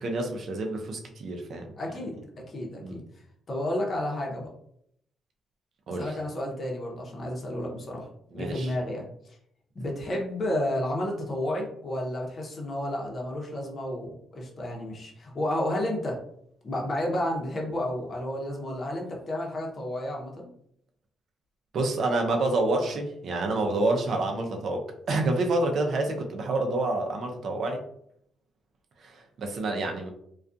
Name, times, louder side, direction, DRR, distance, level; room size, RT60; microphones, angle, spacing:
voice 1, 0.0-1.7 2.8-3.0 5.9-6.1 8.3-8.7 21.7-27.8 29.0-30.1, right 2 dB, 60° right, 3 dB, 0.5 m, -28 dB
voice 2, 1.8-2.1 2.5-3.0 3.5-4.5 5.9-8.1 8.3-9.4 9.7-16.2 16.6-20.5, left 1 dB, 40° left, -1 dB, 0.8 m, -31 dB
2.3 x 2.3 x 2.6 m, 0.71 s
cardioid pair, 90°, 0 cm